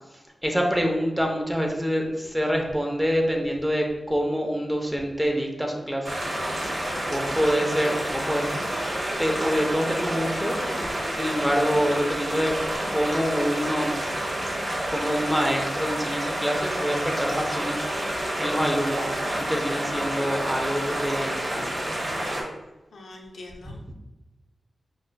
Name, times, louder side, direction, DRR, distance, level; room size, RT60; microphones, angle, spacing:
voice 1, 0.4-6.1 7.1-8.5 9.2-12.5 12.9-14.0 14.9-17.8 18.4-21.7, equal, 5° right, 1 dB, 0.6 m, -26 dB
sound 1, 6.0-22.4, right 1 dB, 50° right, 0.9 m, -29 dB
voice 2, 6.1-6.8 22.9-23.9, left 2 dB, 80° left, 0 dB, 0.5 m, -44 dB
5.1 x 2.4 x 2.2 m, 1.0 s
wide cardioid pair, 80°, 0 cm